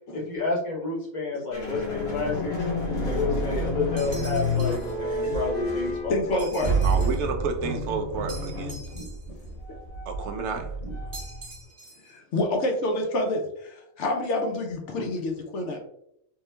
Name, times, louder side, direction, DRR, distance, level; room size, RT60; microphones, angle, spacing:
voice 1, 0.1-2.6 3.1-6.4 8.9-9.1 10.8-10.9 15.0-15.1, left 3 dB, 35° left, 1.1 m, -30 dB
sound 1, 1.5-11.6, equal, 85° left, 1.7 m, -29 dB
sound 2, 4.0-4.9 6.4-7.3 8.3-9.5 11.1-12.1, right 3 dB, 40° right, 1.2 m, -45 dB
voice 2, 6.1-6.7 12.1-15.8, left 1 dB, 60° left, 0.8 m, -28 dB
voice 3, 6.8-8.8 10.1-10.7 15.7-15.8, right 4 dB, 65° right, 0.7 m, -31 dB
3.6 x 2.8 x 3.2 m
omnidirectional pair, 1.5 m